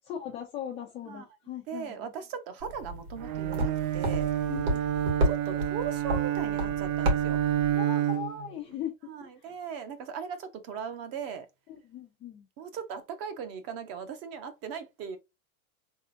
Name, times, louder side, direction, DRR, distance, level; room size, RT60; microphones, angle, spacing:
voice 1, 0.0-2.1 4.5-4.9 7.8-9.0 11.7-12.5, left 9 dB, 15° left, 0.3 m, -39 dB
voice 2, 1.7-4.3 5.2-7.4 9.1-11.5 12.6-15.2, right 7 dB, 35° right, 0.8 m, -38 dB
sound 1, 2.6-7.8, right 1 dB, 90° right, 2.3 m, -32 dB
Bowed string instrument, 3.2-8.5, right 11 dB, 70° right, 0.7 m, -29 dB
3.7 x 3.4 x 2.6 m
supercardioid pair, 150°, 42 cm